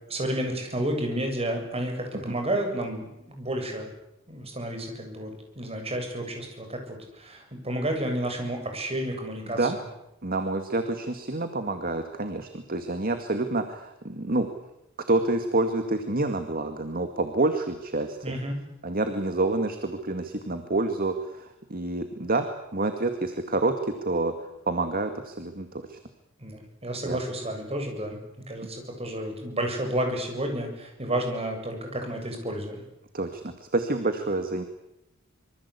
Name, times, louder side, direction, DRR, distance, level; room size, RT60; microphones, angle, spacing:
voice 1, 0.1-3.9 4.3-9.8 18.2-18.6 26.4-28.2 28.5-32.8, right 1 dB, 30° right, 4 dB, 7.5 m, -31 dB
voice 2, 10.2-14.5 15.1-18.2 18.8-22.5 22.7-24.3 24.7-26.0 27.0-27.2 33.1-34.7, right 2 dB, 45° right, 7 dB, 2.1 m, -28 dB
26.5 x 25.0 x 8.5 m, 0.88 s
head